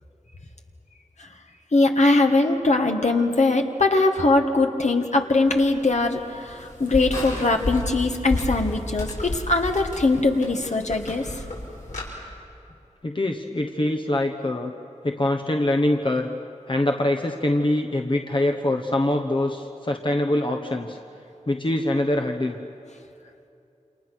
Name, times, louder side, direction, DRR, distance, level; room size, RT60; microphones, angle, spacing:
voice 1, 1.7-11.3, left 2 dB, 65° left, 3 dB, 1.9 m, -21 dB
sound 1, 5.4-12.1, left 1 dB, 85° left, 6.4 m, -32 dB
voice 2, 13.0-14.7 15.0-16.3 16.7-21.0 21.5-22.6, left 1 dB, 40° left, 3 dB, 1.2 m, -24 dB
29.0 x 27.5 x 6.3 m, 2.7 s
wide cardioid pair, 70°, 13 cm